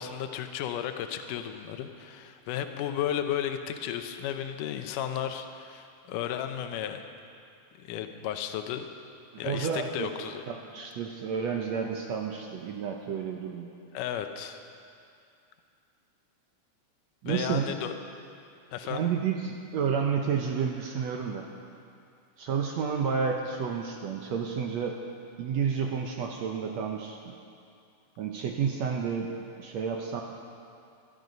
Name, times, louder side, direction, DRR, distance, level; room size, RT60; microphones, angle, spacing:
voice 1, 0.0-7.0 7.8-8.9 9.4-10.4 13.9-14.6 17.3-17.9 18.7-19.1, left 10 dB, 80° left, 7 dB, 2.3 m, -34 dB
voice 2, 9.3-10.1 10.5-13.7 17.2-17.7 18.8-21.4 22.4-25.0 25.4-27.3 28.2-29.3 29.6-30.2, right 6 dB, 70° right, 2 dB, 1.8 m, -30 dB
20.5 x 12.0 x 5.4 m, 2.5 s
omnidirectional pair, 3.8 m